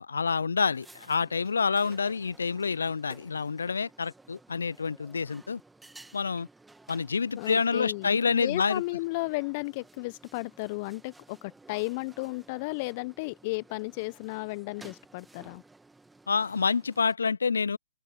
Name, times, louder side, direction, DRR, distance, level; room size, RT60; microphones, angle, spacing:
voice 1, 0.0-5.6 6.1-6.5 6.9-8.8 16.3-17.8, left 5 dB, 75° left, 0.4 m, -28 dB
sound 1, 0.6-17.2, right 3 dB, 5° right, 2.0 m, -55 dB
voice 2, 7.4-15.6, left 25 dB, 35° left, 0.7 m, -34 dB
open air
figure-of-eight pair, 125°, 0 cm